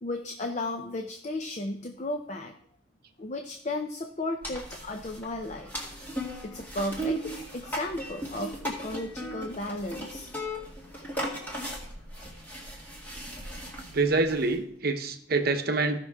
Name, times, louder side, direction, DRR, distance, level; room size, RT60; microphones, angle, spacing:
voice 1, 0.0-2.6 3.2-5.7 6.4-10.3 12.2-12.3, left 2 dB, 35° left, 5 dB, 0.6 m, -34 dB
sound 1, 4.4-14.6, equal, 10° left, 2.2 m, -37 dB
voice 2, 13.9-16.0, right 3 dB, 50° right, 6 dB, 0.9 m, -26 dB
15.5 x 6.0 x 3.5 m, 0.65 s
head